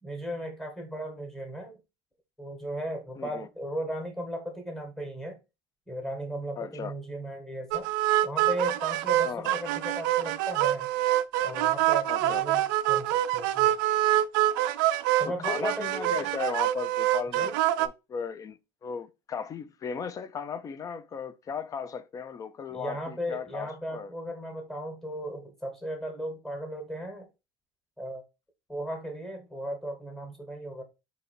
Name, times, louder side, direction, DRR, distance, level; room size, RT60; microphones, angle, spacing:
voice 1, 0.0-1.8 2.4-5.4 5.9-7.9 8.2-10.9 11.4-13.8 15.2-16.3 17.3-17.6 22.7-27.3 28.0-28.2 28.7-30.8, right 1 dB, 5° left, 1.2 m, -36 dB
voice 2, 3.2-3.5 6.6-6.9 9.2-9.5 12.0-12.4 15.2-17.5 17.8-24.1, left 6 dB, 35° left, 0.4 m, -36 dB
sound 1, 7.7-17.9, right 14 dB, 85° right, 0.4 m, -25 dB
3.9 x 2.8 x 4.3 m
supercardioid pair, 100°, 10 cm